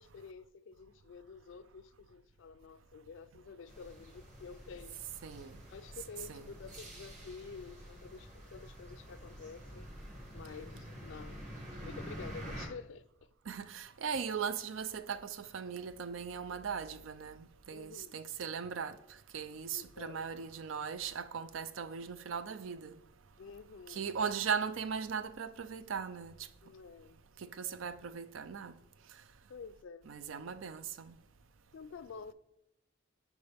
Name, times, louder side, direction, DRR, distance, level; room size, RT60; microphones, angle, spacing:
voice 1, 0.0-5.0 5.5-9.9 10.3-11.5 11.8-13.1 17.7-18.1 19.7-20.2 23.4-24.1 26.6-27.2 29.5-30.1 31.7-32.3, left 5 dB, 75° left, 0.4 m, -49 dB
sound 1, 3.7-12.7, equal, 40° right, 1.6 m, -48 dB
voice 2, 5.2-5.6 6.3-6.4 13.5-19.0 19.3-23.0 23.9-26.3 27.4-28.7 30.1-31.2, right 6 dB, 90° right, 0.5 m, -38 dB
11.0 x 4.8 x 3.4 m
head